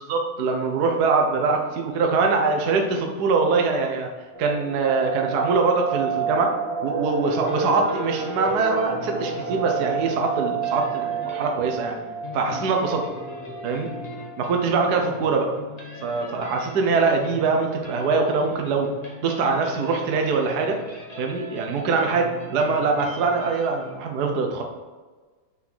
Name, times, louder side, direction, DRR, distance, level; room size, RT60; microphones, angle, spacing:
voice 1, 0.0-4.1 4.4-11.9 12.3-13.0 13.6-13.9 14.4-15.5 16.0-18.9 19.2-20.8 21.2-24.6, right 4 dB, 80° right, 2 dB, 0.8 m, -23 dB
sound 1, 4.3-15.1 15.4-15.5 15.9-16.0 16.5-16.9 17.4-17.5 17.7-18.2 18.5-18.6, right 5 dB, 45° left, 3.1 m, -31 dB
sound 2, 7.2-23.9, equal, 70° left, 0.3 m, -41 dB
6.0 x 5.8 x 6.5 m, 1.3 s
omnidirectional pair, 3.4 m